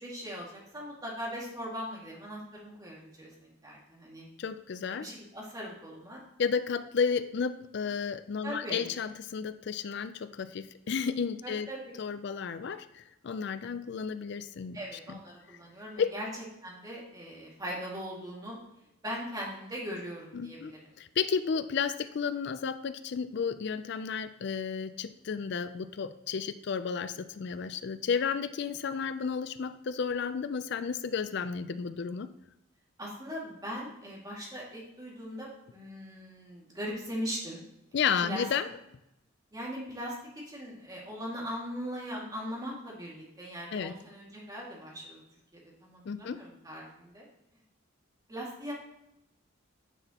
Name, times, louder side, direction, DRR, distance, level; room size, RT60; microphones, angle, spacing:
voice 1, 0.0-4.2 4.9-6.2 8.4-8.9 11.4-11.9 14.7-16.3 16.6-18.6 19.0-20.8 33.0-37.6 38.2-38.5 39.5-40.2 40.5-45.2 45.5-47.2 48.3-48.7, equal, 20° right, -4 dB, 2.0 m, -40 dB
voice 2, 4.4-5.1 6.4-11.7 12.0-14.8 15.1-15.2 16.0-16.1 20.3-32.3 37.9-38.7 43.7-43.9 46.1-46.4, left 6 dB, 55° left, 12 dB, 0.4 m, -32 dB
9.9 x 5.9 x 2.9 m, 0.85 s
head